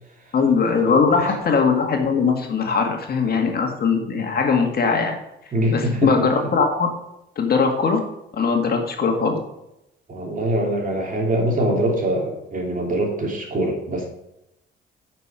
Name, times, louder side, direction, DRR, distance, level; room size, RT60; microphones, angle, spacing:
voice 1, 0.3-5.2 5.7-6.9 7.4-8.0 8.3-9.4, left 5 dB, 50° left, 3 dB, 2.0 m, -20 dB
voice 2, 0.8-1.3 5.5-6.5 10.1-14.0, right 1 dB, 45° right, 0 dB, 3.2 m, -24 dB
9.4 x 6.2 x 5.1 m, 0.86 s
cardioid pair, 90°, 20 cm